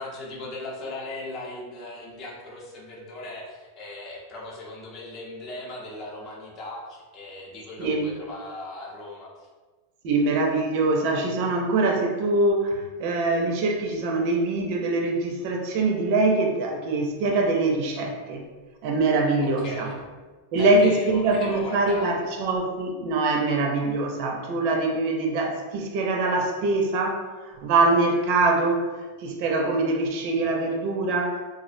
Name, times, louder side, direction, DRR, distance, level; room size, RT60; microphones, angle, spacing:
voice 1, 0.0-9.5 19.4-20.0 20.5-22.2 30.4-30.5, left 2 dB, 40° left, -3 dB, 0.6 m, -38 dB
voice 2, 10.0-18.4 18.8-19.9 20.5-28.8 29.2-31.4, right 2 dB, 55° right, 2 dB, 0.4 m, -23 dB
2.3 x 2.0 x 2.5 m, 1.3 s
supercardioid pair, 135°, 0 cm